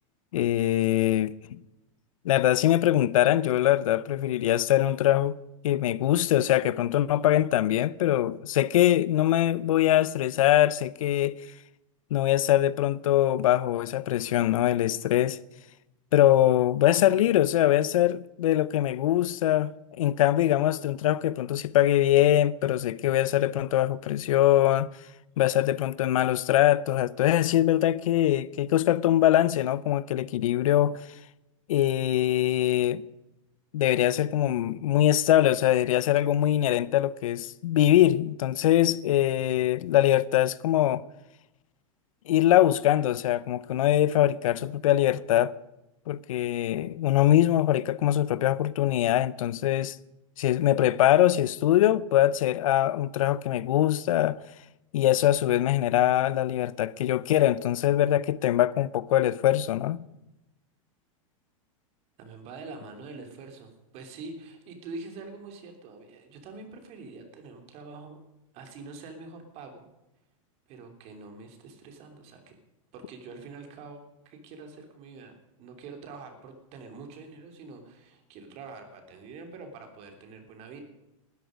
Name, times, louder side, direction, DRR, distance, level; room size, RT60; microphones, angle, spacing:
voice 1, 0.3-1.3 2.2-5.4 5.6-11.4 12.1-15.4 16.1-19.7 20.0-24.9 25.4-31.0 31.7-33.0 33.7-41.0 42.3-45.5 46.1-50.0 50.4-54.4 54.9-60.0, left 13 dB, 90° left, 0.7 m, -23 dB
voice 2, 62.2-68.2 68.5-69.8 70.7-72.5 72.9-75.3 75.6-80.8, right 3 dB, 40° right, 3.2 m, -45 dB
19.5 x 13.0 x 5.2 m
supercardioid pair, 150°, 17 cm